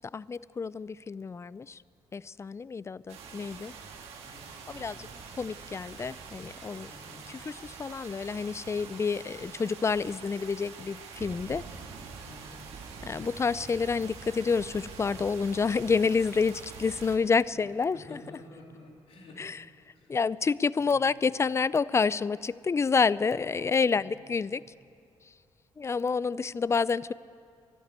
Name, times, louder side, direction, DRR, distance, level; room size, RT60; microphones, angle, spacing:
voice 1, 0.1-1.8 2.1-3.7 4.7-5.1 5.4-6.9 7.3-11.6 13.0-18.2 19.4-19.6 20.1-24.6 25.8-27.1, left 5 dB, 25° left, 20 dB, 0.4 m, -28 dB
sound 1, 3.1-17.2, right 5 dB, 75° right, 1.8 m, -45 dB
voice 2, 4.2-5.1 6.9-7.3 12.2-12.7 17.5-17.6 17.9-19.4 19.9-20.2 20.8-21.0 23.9-24.3, left 2 dB, 65° left, -1 dB, 3.3 m, -51 dB
12.5 x 12.0 x 8.2 m, 2.5 s
supercardioid pair, 55°, 10 cm